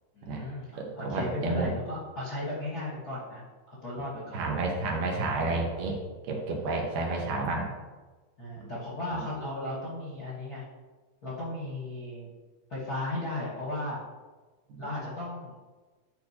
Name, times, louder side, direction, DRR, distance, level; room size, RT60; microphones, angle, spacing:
voice 1, 0.1-4.4 6.8-7.2 8.4-10.6 11.2-12.3 12.7-14.0 14.8-15.5, left 1 dB, 45° left, -8 dB, 1.2 m, -36 dB
voice 2, 0.8-1.7 4.3-6.0 6.2-7.7 9.1-9.2 14.7-14.9, right 3 dB, 75° right, 0 dB, 2.7 m, -30 dB
10.0 x 4.4 x 2.8 m, 1.3 s
omnidirectional pair, 3.9 m